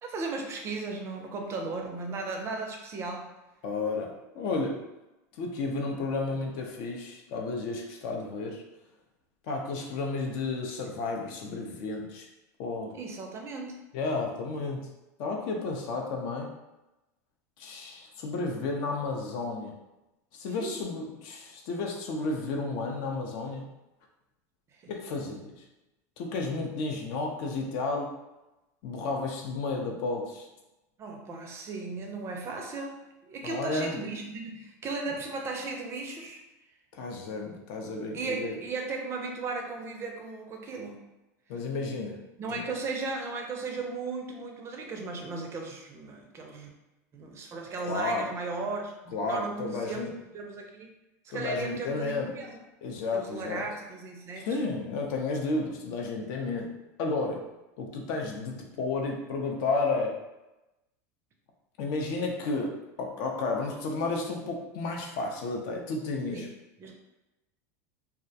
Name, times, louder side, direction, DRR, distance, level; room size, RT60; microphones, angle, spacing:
voice 1, 0.0-3.3 6.3-6.4 9.8-9.9 12.9-13.8 20.6-20.8 24.8-24.9 31.0-36.4 38.1-41.0 42.4-46.7 47.1-50.1 50.3-50.9 51.2-52.6 53.1-54.5 66.3-66.5 66.8-66.9, right 3 dB, 30° right, 2 dB, 0.4 m, -36 dB
voice 2, 3.6-4.8 5.4-8.6 9.5-12.3 12.6-12.9 13.9-14.9 15.2-16.5 17.6-19.7 20.3-23.7 24.9-25.5 26.2-28.1 28.8-30.5 33.4-34.0 36.9-38.6 41.5-42.2 42.5-42.7 47.9-48.3 49.1-50.1 51.3-52.3 52.8-53.6 54.4-56.7 57.0-57.5 57.8-60.2 61.8-66.5, left 3 dB, 60° left, 1 dB, 0.5 m, -32 dB
2.3 x 2.1 x 2.7 m, 0.98 s
supercardioid pair, 120°, 8 cm